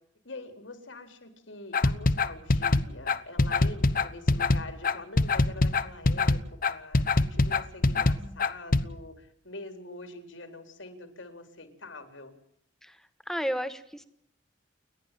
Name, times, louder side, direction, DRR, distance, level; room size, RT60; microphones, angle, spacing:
voice 1, 0.2-12.3, left 2 dB, 90° left, 7 dB, 4.0 m, -44 dB
sound 1, 1.7-8.8, left 3 dB, 50° left, 1.0 m, -23 dB
voice 2, 7.9-8.4 12.8-14.0, equal, ahead, 11 dB, 1.4 m, -35 dB
30.0 x 11.5 x 7.7 m, 0.72 s
head